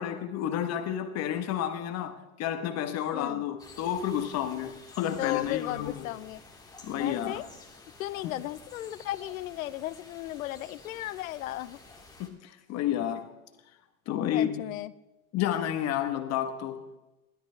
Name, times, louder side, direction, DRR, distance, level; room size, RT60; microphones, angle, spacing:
voice 1, 0.0-6.1 6.8-7.3 12.2-13.3 14.1-14.6 15.3-16.8, left 10 dB, 35° left, 1.3 m, -31 dB
voice 2, 3.1-3.4 5.2-6.4 6.9-7.4 8.0-11.8 14.3-14.9, left 15 dB, 70° left, 0.9 m, -35 dB
sound 1, 3.6-12.3, left 3 dB, 10° left, 2.6 m, -51 dB
19.5 x 13.0 x 3.4 m
hypercardioid pair, 110°, 43 cm